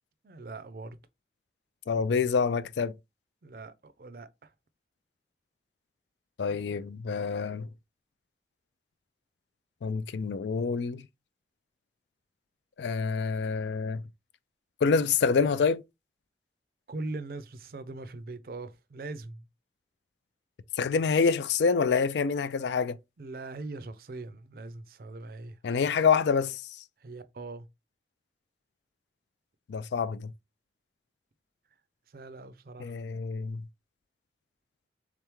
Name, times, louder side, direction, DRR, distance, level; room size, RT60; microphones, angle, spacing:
voice 1, 0.2-1.0 3.4-4.5 16.9-19.5 23.2-25.6 27.0-27.7 32.1-33.0, right 2 dB, 55° right, 0.4 m, -41 dB
voice 2, 1.9-2.9 6.4-7.7 9.8-11.1 12.8-14.0 14.8-15.8 20.8-23.0 25.6-26.6 29.7-30.3 32.8-33.6, left 5 dB, 80° left, 0.4 m, -27 dB
3.6 x 3.4 x 3.0 m
head